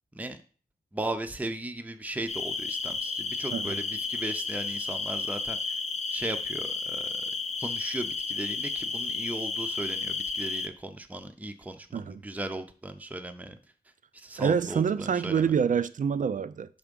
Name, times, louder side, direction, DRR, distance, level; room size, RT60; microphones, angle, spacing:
voice 1, 0.9-5.8 6.1-7.3 7.6-13.6 14.1-15.5, right 2 dB, 10° right, 0.6 m, -37 dB
sound 1, 2.3-10.7, left 4 dB, 45° left, 0.6 m, -32 dB
voice 2, 14.4-16.7, right 7 dB, 55° right, 0.4 m, -26 dB
5.6 x 3.6 x 5.2 m
cardioid pair, 60°, 16 cm